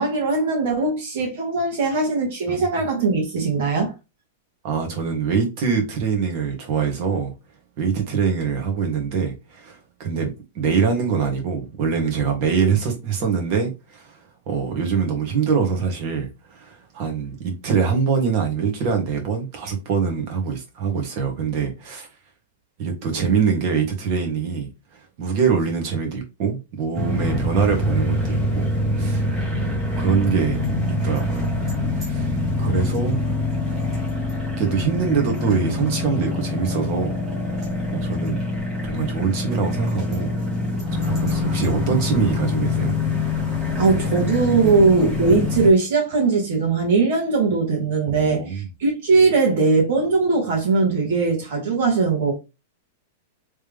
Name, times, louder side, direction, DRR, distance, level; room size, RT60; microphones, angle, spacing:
voice 1, 0.0-3.9 32.6-32.8 43.8-52.3, right 4 dB, 55° right, 1.7 m, -20 dB
voice 2, 4.6-7.3 7.8-14.2 14.5-22.1 22.8-24.7 25.2-29.3 29.6-30.6 31.0-31.5 32.0-32.3 32.6-33.2 34.6-37.2 37.9-38.5 38.8-40.3 40.9-43.0 44.6-44.7 48.1-48.7, right 6 dB, 40° right, 1.4 m, -24 dB
sound 1, 26.9-45.7, left 2 dB, 20° right, 1.5 m, -24 dB
3.4 x 3.1 x 3.5 m
supercardioid pair, 170°, 0 cm